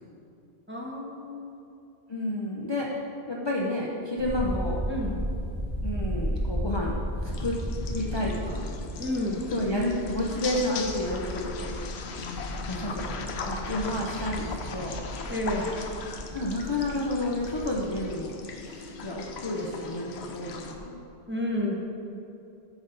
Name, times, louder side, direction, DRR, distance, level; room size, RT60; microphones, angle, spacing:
voice 1, 0.7-1.7 4.9-5.2 9.0-9.5 15.3-15.7 21.3-21.8, left 1 dB, 10° right, -2 dB, 0.9 m, -31 dB
voice 2, 2.1-2.9 3.3-4.8 5.8-7.6 7.9-8.7 9.5-11.8 12.7-15.0 16.3-21.0, left 1 dB, 30° left, -4 dB, 0.6 m, -31 dB
sound 1, 4.2-19.9 20.3-20.8, equal, 10° left, 1.5 m, -35 dB
sound 2, 7.2-20.7, left 4 dB, 90° left, 0.9 m, -39 dB
9.1 x 6.1 x 3.9 m, 2.7 s
omnidirectional pair, 1.1 m